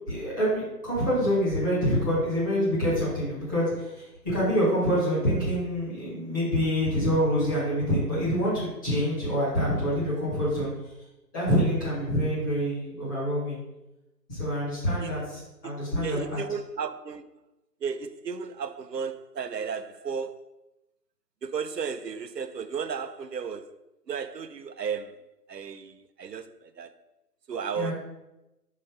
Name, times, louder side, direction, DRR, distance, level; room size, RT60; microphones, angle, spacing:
voice 1, 0.1-10.7 11.3-13.6 14.3-16.4 27.7-27.9, equal, 10° left, 1.7 m, -26 dB
voice 2, 15.6-17.3 17.8-20.4 21.4-23.7 24.1-26.9 27.5-27.9, right 6 dB, 80° right, 0.7 m, -34 dB
5.6 x 4.2 x 5.1 m
figure-of-eight pair, 155°, 48 cm